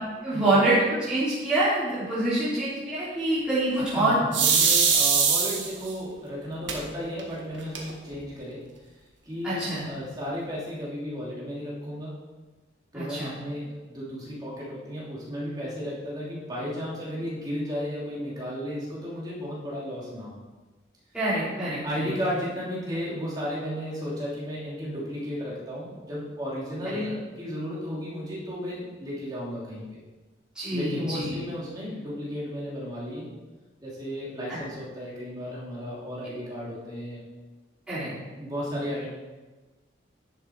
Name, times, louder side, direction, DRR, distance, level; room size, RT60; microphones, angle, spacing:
voice 1, 0.2-4.2 9.4-9.9 12.9-13.3 21.1-22.1 30.6-31.4 34.5-34.6 37.9-38.1, right 1 dB, 5° right, -12 dB, 3.5 m, -26 dB
voice 2, 3.8-8.6 9.2-12.2 12.9-20.3 21.8-29.9 30.7-33.2 33.8-37.2 38.4-39.1, equal, 20° right, -7 dB, 3.0 m, -34 dB
sound 1, 4.3-5.9 6.7-6.8 7.2-7.3 7.5-8.1, right 6 dB, 80° right, 1.6 m, -21 dB
10.5 x 6.9 x 4.7 m, 1.2 s
head